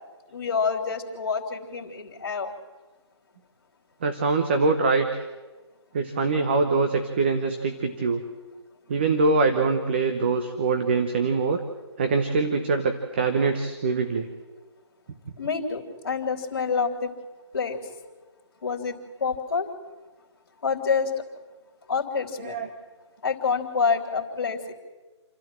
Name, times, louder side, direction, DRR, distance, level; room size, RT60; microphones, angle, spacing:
voice 1, 0.3-2.5 15.4-17.1 17.5-17.8 18.6-19.7 20.6-21.1 21.9-22.6 23.2-24.7, left 5 dB, 45° left, -4 dB, 3.1 m, -27 dB
voice 2, 4.0-5.2 5.9-8.2 8.9-11.6 12.0-14.3 22.4-22.7, right 4 dB, 20° right, 7 dB, 0.9 m, -23 dB
28.5 x 12.0 x 7.5 m, 1.3 s
hypercardioid pair, 165°, 15 cm